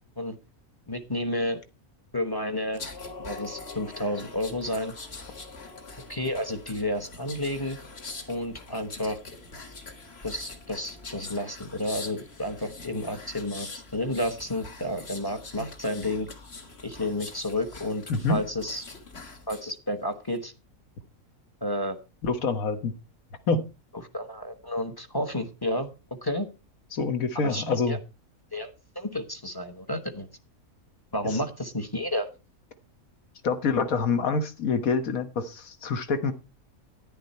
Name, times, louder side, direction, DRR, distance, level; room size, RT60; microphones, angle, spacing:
voice 1, 0.9-1.6 2.1-2.8 3.2-4.9 6.1-7.8 8.3-9.2 10.2-16.3 16.8-18.8 19.5-20.5 21.6-22.0 24.1-25.9 26.2-26.5 27.4-28.0 28.5-30.3 31.1-32.3, left 1 dB, 20° left, 8 dB, 1.0 m, -31 dB
sound 1, 2.7-19.7 20.1-20.4, left 3 dB, 45° left, 1.8 m, -43 dB
voice 2, 18.1-18.4 22.2-22.9 23.5-23.7 26.9-28.0 31.3-31.4 33.4-36.3, left 4 dB, 70° left, 10 dB, 1.7 m, -26 dB
10.5 x 10.0 x 4.3 m, 0.29 s
omnidirectional pair, 1.5 m